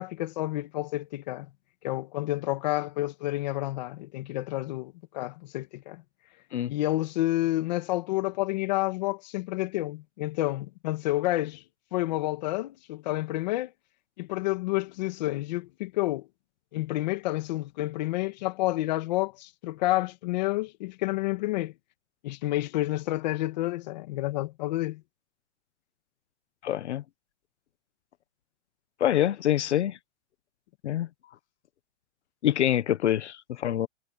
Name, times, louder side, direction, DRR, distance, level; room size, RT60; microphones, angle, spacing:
voice 1, 0.0-1.5 1.8-6.0 6.7-11.6 11.9-13.7 14.2-16.3 16.7-21.7 22.2-25.0, left 17 dB, 35° left, 1.9 m, -29 dB
voice 2, 26.6-27.0 29.0-30.0 30.8-31.1 32.4-33.9, left 11 dB, 70° left, 1.4 m, -25 dB
hypercardioid pair, 170°, 36 cm